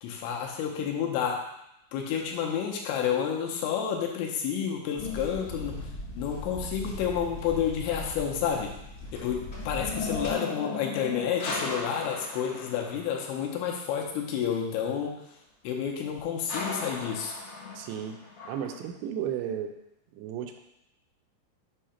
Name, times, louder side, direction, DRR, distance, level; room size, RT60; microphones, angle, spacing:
voice 1, 0.0-1.5 1.9-5.8 6.1-8.7 9.2-15.2 15.6-17.3, left 8 dB, 80° left, 0 dB, 3.0 m, -30 dB
sound 1, 5.0-6.3 8.8-13.6 16.5-18.9, left 3 dB, 65° left, 2.8 m, -38 dB
sound 2, 5.0-10.3, left 1 dB, 30° left, 1.1 m, -40 dB
voice 2, 17.8-18.2 18.5-19.7 20.1-20.6, right 9 dB, 85° right, 5 dB, 2.9 m, -34 dB
7.5 x 2.8 x 5.6 m, 0.83 s
omnidirectional pair, 5.3 m